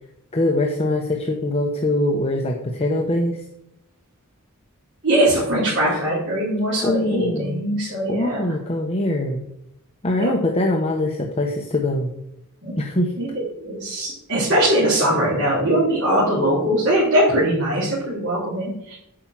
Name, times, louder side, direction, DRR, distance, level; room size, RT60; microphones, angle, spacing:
voice 1, 0.3-3.4 6.8-7.6 8.1-9.4 10.0-12.1 12.8-13.1, left 1 dB, 30° left, 1 dB, 1.0 m, -22 dB
voice 2, 5.0-8.4 10.2-10.3 12.6-12.7 13.2-19.0, right 1 dB, 55° right, -8 dB, 3.8 m, -21 dB
8.7 x 5.7 x 7.5 m, 0.79 s
head